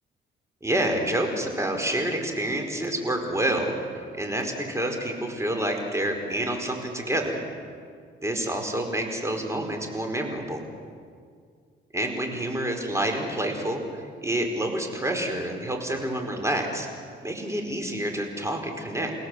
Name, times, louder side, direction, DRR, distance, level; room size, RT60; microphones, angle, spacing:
voice 1, 0.6-7.4 8.2-10.6 11.9-16.9 17.2-19.1, right 1 dB, 15° right, 3 dB, 4.9 m, -28 dB
29.5 x 17.5 x 8.2 m, 2.1 s
cardioid pair, 90°, 20 cm